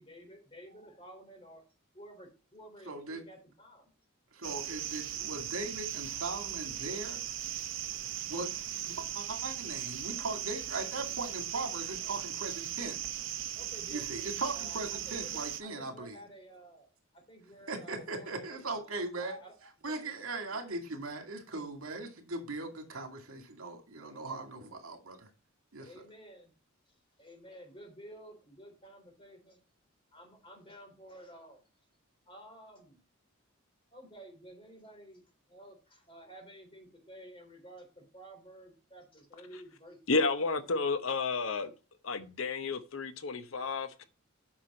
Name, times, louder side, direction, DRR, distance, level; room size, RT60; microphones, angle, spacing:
voice 1, 0.0-1.6 1.9-3.9 12.0-12.2 13.6-16.9 17.1-20.3 24.0-24.5 25.8-26.5 27.2-29.6 30.1-31.6 32.3-33.0 33.9-35.2 35.5-40.4, equal, 25° left, 3.7 m, -52 dB
voice 2, 2.9-3.2 4.3-7.2 8.2-8.5 8.8-13.0 13.9-16.2 17.7-19.4 19.8-25.3 25.7-25.9, right 3 dB, 90° right, 2.4 m, -39 dB
sound 1, 4.4-15.6, right 11 dB, 65° right, 0.8 m, -38 dB
voice 3, 40.1-41.7 42.0-44.0, left 3 dB, 70° left, 0.8 m, -31 dB
8.8 x 6.1 x 4.3 m
head